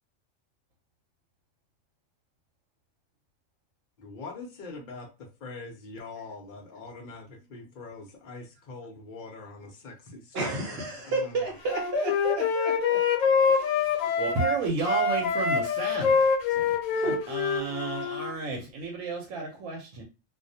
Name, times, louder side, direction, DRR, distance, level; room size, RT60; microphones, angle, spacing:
voice 1, 4.0-5.1 5.4-11.4, left 3 dB, 50° left, 0.6 m, -43 dB
voice 2, 10.3-13.0 13.5-14.2 17.0-17.2, right 2 dB, 60° right, 0.8 m, -32 dB
Wind instrument woodwind instrument, 11.7-14.6 14.8-18.3, left 5 dB, 85° left, 1.0 m, -25 dB
voice 3, 14.2-16.2 16.6-20.0, right 3 dB, 85° right, 1.0 m, -33 dB
2.3 x 2.0 x 2.6 m
omnidirectional pair, 1.4 m